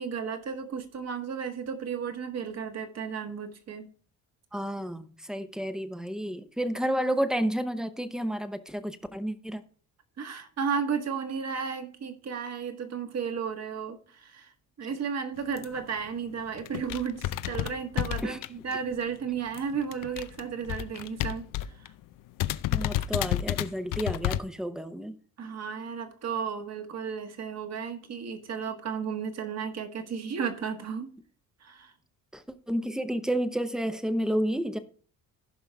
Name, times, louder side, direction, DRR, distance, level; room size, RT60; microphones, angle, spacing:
voice 1, 0.0-3.9 10.2-14.5 14.8-21.9 25.4-31.1 31.6-31.9, right 6 dB, 45° right, 1.6 m, -34 dB
voice 2, 4.5-9.6 18.2-18.4 22.7-25.1 32.3-34.8, equal, ahead, 0.8 m, -31 dB
sound 1, 15.6-15.8 16.3-16.4 16.6-18.9 19.2-21.9 22.1-22.2 22.4-24.4, left 13 dB, 65° left, 0.6 m, -30 dB
15.5 x 5.5 x 3.5 m
cardioid pair, 115°, 35 cm